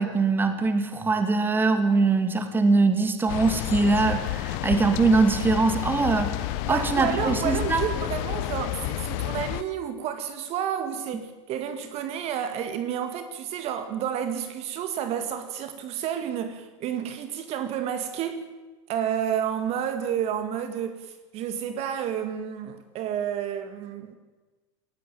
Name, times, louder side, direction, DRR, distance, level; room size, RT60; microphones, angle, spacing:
voice 1, 0.0-7.8, right 3 dB, 15° right, 2.5 m, -22 dB
sound 1, 3.3-9.6, left 16 dB, 50° left, 0.9 m, -30 dB
voice 2, 6.6-18.4 18.9-24.2, right 9 dB, 40° right, 2.0 m, -30 dB
18.5 x 16.5 x 9.0 m
supercardioid pair, 125°, 16 cm